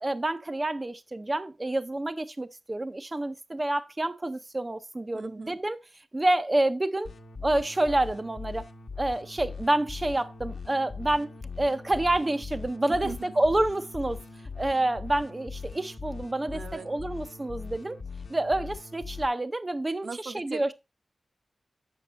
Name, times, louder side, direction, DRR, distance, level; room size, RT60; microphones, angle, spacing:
voice 1, 0.0-5.8 6.1-7.1 7.4-8.6 9.0-11.3 11.6-14.2 14.6-16.6 16.9-18.0 18.3-20.7, right 1 dB, 20° right, 0.5 m, -28 dB
voice 2, 5.1-5.6 12.9-13.2 16.5-16.9 20.0-20.7, right 5 dB, 60° right, 0.7 m, -39 dB
sound 1, 7.0-19.3, left 5 dB, 65° left, 1.0 m, -41 dB
8.3 x 6.9 x 3.9 m
wide cardioid pair, 135°, 0 cm